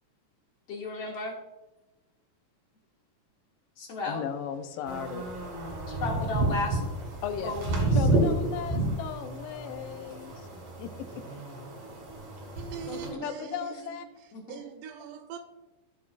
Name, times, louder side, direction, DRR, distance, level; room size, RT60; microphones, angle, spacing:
voice 1, 0.7-1.3 3.8-4.2 5.9-6.8 7.4-8.0 12.9-13.2 14.3-14.6, left 2 dB, 55° left, 2.3 m, -34 dB
voice 2, 4.0-5.2 7.2-7.6 7.9-10.5 10.8-11.2 13.2-14.1, left 8 dB, 85° left, 2.3 m, -36 dB
sound 1, 4.9-13.1, right 2 dB, 50° right, 3.2 m, -30 dB
voice 3, 12.6-15.4, right 8 dB, 80° right, 1.9 m, -42 dB
16.0 x 5.9 x 2.4 m
omnidirectional pair, 3.9 m